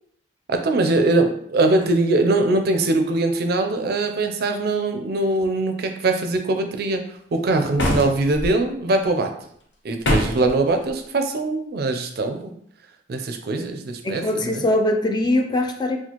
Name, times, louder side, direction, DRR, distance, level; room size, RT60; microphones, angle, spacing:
voice 1, 0.5-7.0 7.3-9.3 9.8-12.5 13.1-14.2 14.5-14.6, right 2 dB, 60° right, 5 dB, 0.4 m, -22 dB
sound 1, 7.8-8.5 10.0-10.5, left 1 dB, 75° left, 0.7 m, -22 dB
voice 2, 14.0-16.0, left 1 dB, 25° left, 5 dB, 0.3 m, -22 dB
4.2 x 2.3 x 2.9 m, 0.67 s
head